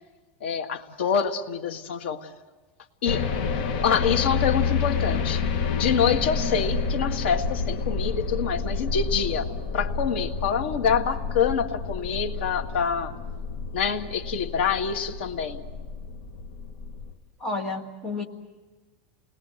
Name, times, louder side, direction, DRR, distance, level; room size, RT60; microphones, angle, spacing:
voice 1, 0.4-2.3 3.0-3.3 3.8-5.4 5.7-13.1 13.7-15.6, left 7 dB, 90° left, 6 dB, 2.0 m, -26 dB
sound 1, 3.1-17.1, left 5 dB, 55° left, 1.8 m, -29 dB
voice 2, 17.4-18.2, left 3 dB, 10° left, 0 dB, 1.9 m, -30 dB
29.5 x 21.0 x 7.9 m, 1.3 s
supercardioid pair, 175°, 6 cm